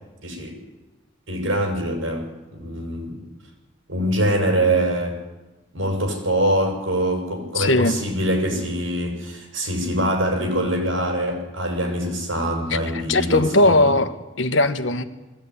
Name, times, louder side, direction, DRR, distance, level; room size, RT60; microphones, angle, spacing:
voice 1, 0.2-0.5 1.3-3.2 3.9-5.2 5.7-13.9, right 1 dB, 80° right, 4 dB, 6.8 m, -24 dB
voice 2, 7.5-8.0 12.7-15.0, left 2 dB, 70° left, 10 dB, 1.6 m, -19 dB
21.0 x 17.0 x 9.8 m, 1.1 s
head